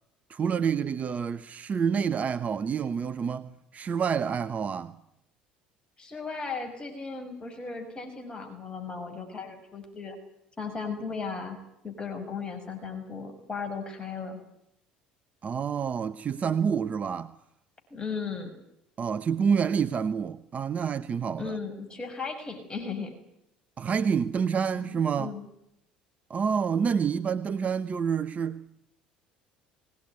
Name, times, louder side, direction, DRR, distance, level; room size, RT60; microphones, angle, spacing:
voice 1, 0.3-5.0 15.4-17.3 19.0-21.6 23.8-25.3 26.3-28.7, right 7 dB, 35° right, 1.0 m, -28 dB
voice 2, 6.0-10.2 10.6-11.6 11.8-14.4 17.9-18.5 21.4-23.1 24.8-25.5, left 5 dB, 20° left, 6.1 m, -36 dB
21.5 x 18.5 x 9.7 m
figure-of-eight pair, 60°, 4 cm